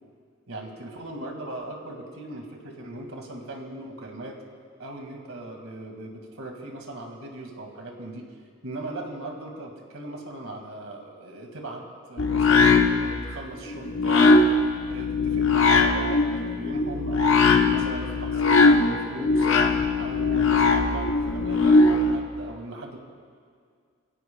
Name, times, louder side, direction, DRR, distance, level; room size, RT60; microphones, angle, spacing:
voice 1, 0.5-4.4 4.8-8.3 8.6-11.8 12.1-14.4 14.9-19.5 20.0-23.0, right 1 dB, 85° right, 2 dB, 2.2 m, -38 dB
sound 1, 12.2-22.2, left 3 dB, 70° left, 1.1 m, -20 dB
24.5 x 16.0 x 2.4 m, 2.1 s
head